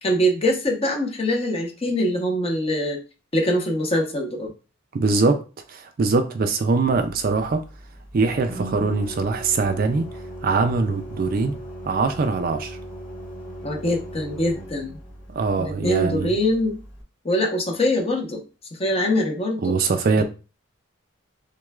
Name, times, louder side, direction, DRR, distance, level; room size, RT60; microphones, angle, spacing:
voice 1, 0.0-3.0 3.3-4.5 13.6-15.0 15.6-16.8 17.2-18.4 18.8-19.7 20.2-20.3, equal, 30° left, 0.8 m, -23 dB
voice 2, 4.9-5.4 5.7-7.6 8.1-10.1 10.4-11.6 11.9-12.8 15.3-16.4 19.6-20.2, right 4 dB, 45° right, 0.4 m, -22 dB
Organ, 6.9-17.0, right 1 dB, 5° left, 1.3 m, -39 dB
6.0 x 2.2 x 2.3 m
head